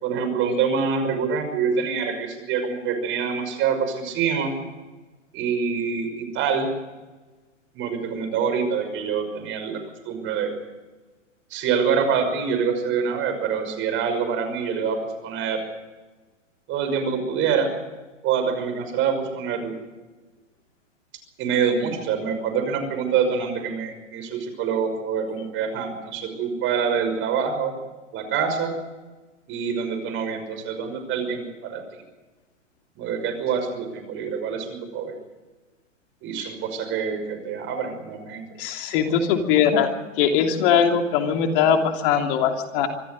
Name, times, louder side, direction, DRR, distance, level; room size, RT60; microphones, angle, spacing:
voice 1, 0.0-4.5 5.3-6.7 7.7-9.8 10.0-10.5 11.5-15.0 15.2-15.6 16.7-17.7 18.2-19.7 21.4-27.7 28.1-28.7 29.5-32.0 33.0-35.2 36.2-38.4 39.0-39.1, right 6 dB, 30° right, 7 dB, 5.9 m, -25 dB
voice 2, 38.6-39.9 40.2-42.9, left 7 dB, 45° left, 4 dB, 3.1 m, -21 dB
25.5 x 14.5 x 7.8 m, 1.2 s
hypercardioid pair, 125°, 38 cm